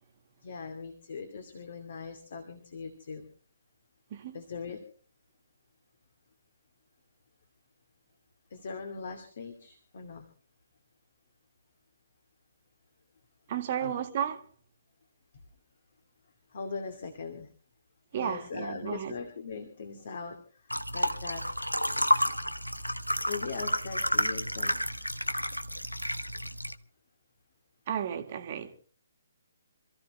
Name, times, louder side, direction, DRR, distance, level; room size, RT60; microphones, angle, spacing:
voice 1, 0.4-3.3 4.3-4.8 8.5-10.3 13.8-13.9 16.5-17.5 18.1-21.4 23.3-24.8, left 5 dB, 45° left, 2.6 m, -40 dB
voice 2, 13.5-14.5 18.1-19.1 27.9-28.7, right 9 dB, 35° right, 1.7 m, -33 dB
sound 1, 20.7-26.7, equal, 90° left, 1.1 m, -30 dB
27.0 x 15.0 x 3.2 m
figure-of-eight pair, 135°, 0 cm